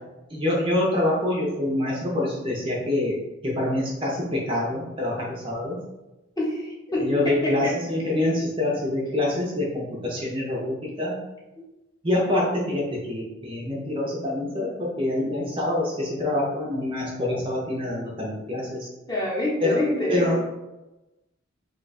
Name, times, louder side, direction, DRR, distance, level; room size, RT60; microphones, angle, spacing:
voice 1, 0.3-3.2 3.4-5.8 7.0-11.2 12.0-18.9 19.6-19.8 20.1-20.4, left 1 dB, 25° right, -3 dB, 0.6 m, -26 dB
voice 2, 6.4-7.8 19.1-20.4, left 1 dB, 20° left, -5 dB, 0.8 m, -27 dB
2.8 x 2.3 x 4.0 m, 1.0 s
head